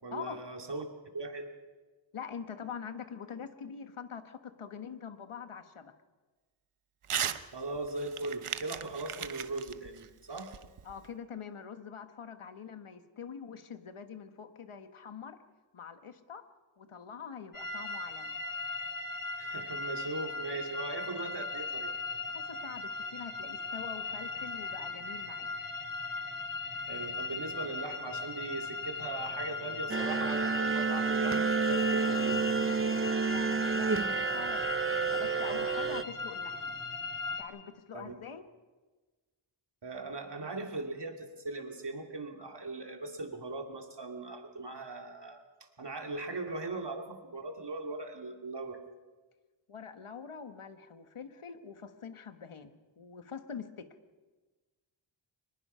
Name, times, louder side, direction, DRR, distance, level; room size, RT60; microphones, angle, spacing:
voice 1, 0.0-0.9 1.1-1.4 7.5-10.5 19.4-21.9 26.9-32.6 37.9-38.2 39.8-45.4 45.8-48.8, right 2 dB, 55° right, 4 dB, 2.6 m, -39 dB
voice 2, 2.1-5.9 10.8-15.4 15.7-16.4 16.8-18.4 22.3-25.5 33.2-36.7 37.4-38.4 49.7-53.9, left 7 dB, 85° left, 9 dB, 1.5 m, -44 dB
Crumpling crinkling / Tearing, 7.0-7.4 7.8-11.1, right 8 dB, 85° right, 0.9 m, -37 dB
sound 1, 17.5-37.4, left 3 dB, 40° left, 2.8 m, -38 dB
sound 2, 29.9-36.0, right 5 dB, 25° right, 0.6 m, -30 dB
24.5 x 20.5 x 5.6 m, 1.3 s
wide cardioid pair, 95°, 49 cm